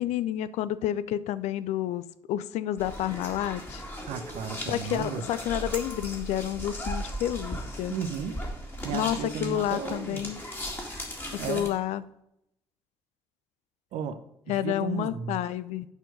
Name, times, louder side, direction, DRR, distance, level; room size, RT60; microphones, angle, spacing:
voice 1, 0.0-3.8 4.7-7.9 8.9-10.4 11.3-12.1 14.5-15.9, left 12 dB, 55° left, 16 dB, 0.4 m, -30 dB
sound 1, 2.8-11.7, equal, 15° left, 2.3 m, -37 dB
voice 2, 4.1-5.2 7.9-8.4 8.8-10.3 11.4-11.7 13.9-14.2 14.5-15.4, right 7 dB, 55° right, 10 dB, 0.7 m, -34 dB
9.5 x 4.5 x 5.1 m, 0.79 s
figure-of-eight pair, 45°, 14 cm